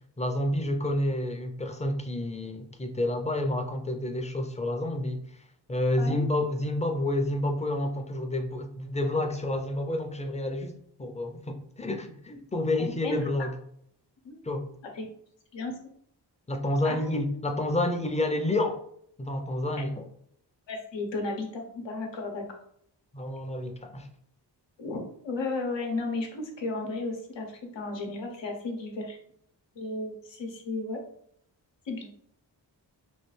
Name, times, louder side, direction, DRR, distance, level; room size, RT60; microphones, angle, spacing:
voice 1, 0.2-5.4 5.7-13.5 14.4-14.7 16.5-18.8 19.2-20.1 23.1-24.1, left 1 dB, 15° left, 0.4 m, -29 dB
voice 2, 12.8-13.3 14.2-14.4 15.0-15.1 15.5-15.7 16.8-17.0 20.7-22.6 24.8-29.2 29.8-31.0 31.9-32.1, left 3 dB, 90° left, 0.8 m, -34 dB
3.2 x 2.4 x 3.2 m
wide cardioid pair, 80°, 43 cm